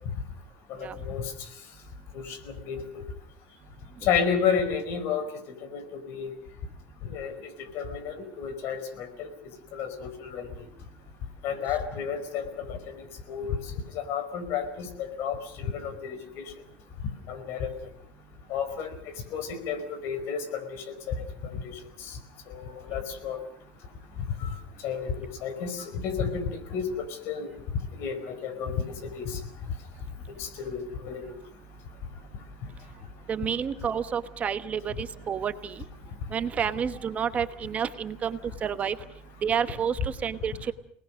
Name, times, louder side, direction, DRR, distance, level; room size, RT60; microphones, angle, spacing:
voice 1, 0.8-1.3 2.1-2.4 2.7-3.0 4.0-5.2 5.7-6.3 7.1-9.3 9.7-10.5 11.4-13.6 13.9-16.4 17.3-17.7 18.5-18.9 19.3-21.6 22.5-23.4 24.4-24.5 24.8-27.5 28.0-28.8 29.1-29.4 30.4-31.2, left 7 dB, 55° left, 10 dB, 4.8 m, -31 dB
voice 2, 33.3-35.8 36.3-39.0 39.4-40.7, right 7 dB, 30° right, 11 dB, 1.1 m, -30 dB
29.0 x 19.5 x 6.4 m, 0.66 s
supercardioid pair, 130°, 5 cm